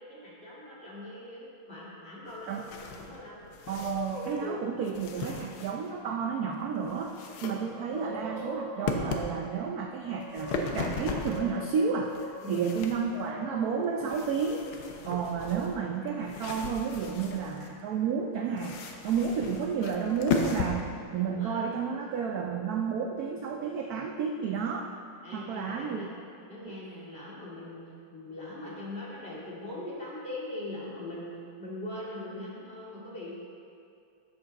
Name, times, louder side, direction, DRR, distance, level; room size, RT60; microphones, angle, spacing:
voice 1, 0.0-2.6 2.9-3.4 12.4-12.7 21.2-21.7 25.2-26.1 26.5-27.8 28.1-31.3 31.6-33.3, left 1 dB, 30° left, -7 dB, 2.4 m, -41 dB
sound 1, 2.3-4.5 4.8-6.0 6.5-7.5 7.9-8.4 8.9-9.3 10.1-11.6 12.0-13.3 14.0-17.7 18.6-20.7, left 4 dB, 85° left, 1.7 m, -36 dB
voice 2, 3.7-7.2 7.4-12.2 12.5-14.7 15.0-24.9 25.3-26.2 26.6-26.7, right 6 dB, 75° right, 3 dB, 0.8 m, -31 dB
sound 2, 3.8-4.9 7.4-7.5 7.8-9.5 10.0-10.8 11.3-12.6 13.1-14.2 15.0-15.6, right 1 dB, 60° right, 0.4 m, -41 dB
12.0 x 7.9 x 4.1 m, 2.5 s
omnidirectional pair, 2.3 m